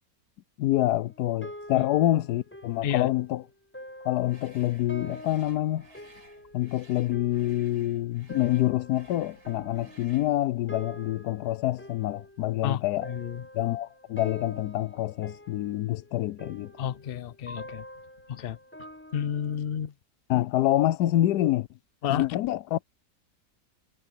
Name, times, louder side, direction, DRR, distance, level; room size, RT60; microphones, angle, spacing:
voice 1, 0.6-3.4 4.0-5.9 6.5-13.1 13.5-16.7 20.3-21.7 22.1-22.8, left 14 dB, 90° left, 1.1 m, -26 dB
sound 1, 0.9-19.6, equal, 5° left, 6.8 m, -47 dB
sound 2, 4.2-10.4, right 2 dB, 75° right, 7.2 m, -56 dB
voice 2, 12.6-13.4 16.8-17.9 18.3-18.6 19.1-19.9 22.0-22.3, left 9 dB, 55° left, 0.7 m, -31 dB
omnidirectional pair, 1.7 m